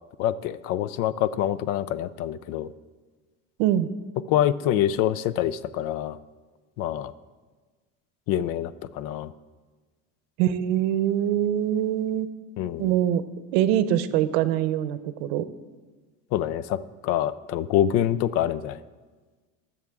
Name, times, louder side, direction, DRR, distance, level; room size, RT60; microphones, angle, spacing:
voice 1, 0.2-2.7 4.3-6.2 6.8-7.1 8.3-9.3 12.6-12.9 16.3-18.8, left 11 dB, 55° left, 16 dB, 0.4 m, -26 dB
voice 2, 10.4-12.3 12.8-13.2 13.5-15.5, right 11 dB, 85° right, 13 dB, 0.8 m, -23 dB
20.0 x 7.1 x 3.6 m, 1.3 s
cardioid pair, 170°, 30 cm